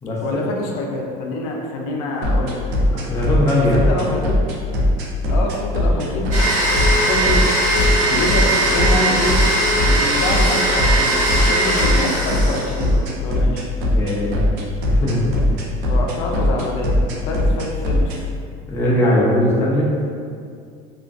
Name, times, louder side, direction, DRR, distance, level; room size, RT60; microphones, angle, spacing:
voice 1, 0.2-2.6 3.6-4.4 5.3-6.3 7.0-7.5 8.1-9.5 9.7-11.2 11.5-13.6 15.8-17.0 17.3-18.1, left 1 dB, 90° left, 0 dB, 0.4 m, -26 dB
sound 1, 2.2-18.2, left 1 dB, 65° right, 0.4 m, -19 dB
voice 2, 2.9-3.9 13.9-14.4 14.9-15.2 18.7-19.9, left 1 dB, 15° left, -5 dB, 0.3 m, -19 dB
Domestic sounds home sounds, 6.3-13.0, right 1 dB, 45° right, 0.8 m, -19 dB
2.4 x 2.4 x 2.2 m, 2.2 s
cardioid pair, 175°, 18 cm